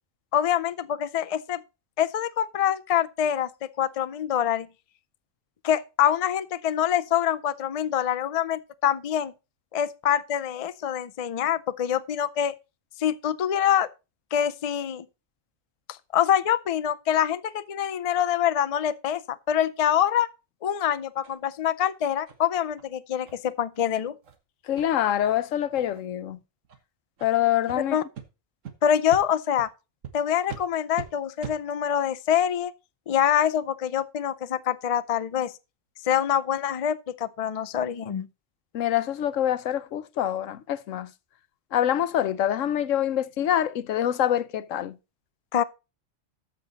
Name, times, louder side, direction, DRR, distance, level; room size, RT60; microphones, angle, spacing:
voice 1, 0.3-1.6 2.0-3.5 3.8-4.7 5.6-9.3 9.7-12.5 13.0-13.9 14.3-15.1 16.1-20.3 20.6-24.1 27.9-28.0 28.8-29.7 30.1-32.7 33.1-35.5 36.1-38.3 45.5-45.6, left 10 dB, 55° left, 0.4 m, -25 dB
sound 1, 21.2-21.4 21.8-21.9 22.3-22.4 22.8-22.9 23.3-23.4 23.7-23.9 24.2-24.4 24.8-24.9 25.2-25.4 25.7-26.1 26.6-26.8 27.2-27.3 27.7-27.8 28.1-28.3 28.6-28.7 29.1-29.2 29.6-29.7 30.0-30.1 30.5-30.6 30.9-31.1 31.4-31.6, right 8 dB, 80° right, 1.6 m, -40 dB
voice 2, 24.7-26.4 27.2-27.9 38.7-41.1 41.7-44.9, left 11 dB, 85° left, 1.1 m, -25 dB
13.5 x 5.7 x 4.0 m
omnidirectional pair, 1.3 m